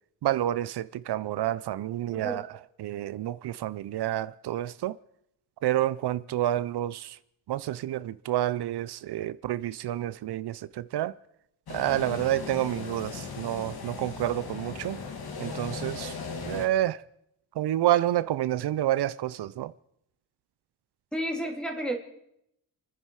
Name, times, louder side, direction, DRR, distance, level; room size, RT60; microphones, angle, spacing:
voice 1, 0.2-2.5 2.8-5.0 5.6-7.2 7.5-11.1 11.7-15.0 15.4-16.1 16.5-17.0 17.6-19.7, right 13 dB, 85° right, 0.5 m, -29 dB
voice 2, 2.1-2.4 21.1-22.0, right 1 dB, ahead, 2.9 m, -32 dB
sound 1, 11.7-16.7, left 5 dB, 70° left, 2.2 m, -38 dB
29.0 x 10.0 x 4.7 m
wide cardioid pair, 120°, 39 cm